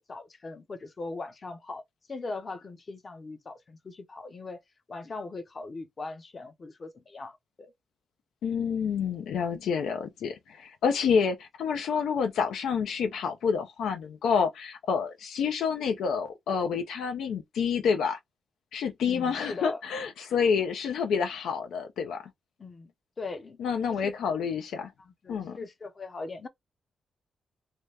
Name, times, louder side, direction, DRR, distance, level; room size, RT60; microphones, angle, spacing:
voice 1, 0.0-1.8 2.1-4.6 4.9-7.7 19.0-19.8 22.6-22.9 23.2-23.6 23.9-24.1 25.1-26.5, left 3 dB, 40° left, 0.7 m, -40 dB
voice 2, 8.4-18.2 18.7-22.2 23.6-24.9 25.3-25.6, left 6 dB, 80° left, 0.4 m, -28 dB
2.7 x 2.2 x 3.2 m
cardioid pair, 70°, 0 cm